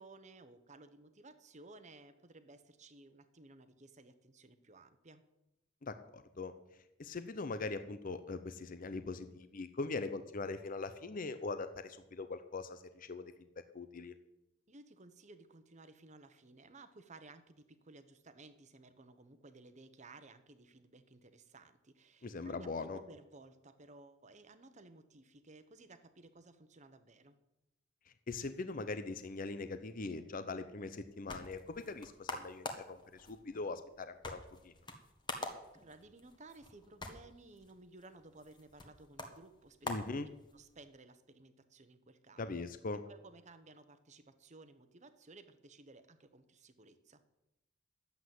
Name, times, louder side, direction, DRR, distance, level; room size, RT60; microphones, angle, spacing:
voice 1, 0.0-5.2 14.7-27.4 35.7-42.5 43.1-47.2, right 2 dB, 35° right, 10 dB, 1.0 m, -57 dB
voice 2, 5.8-6.5 7.0-13.3 13.7-14.1 22.2-23.0 28.1-34.7 39.8-40.3 42.4-43.0, left 3 dB, 45° left, 10 dB, 0.7 m, -41 dB
sound 1, 30.9-40.8, left 2 dB, 25° left, 1.5 m, -47 dB
12.0 x 8.2 x 7.7 m, 0.91 s
head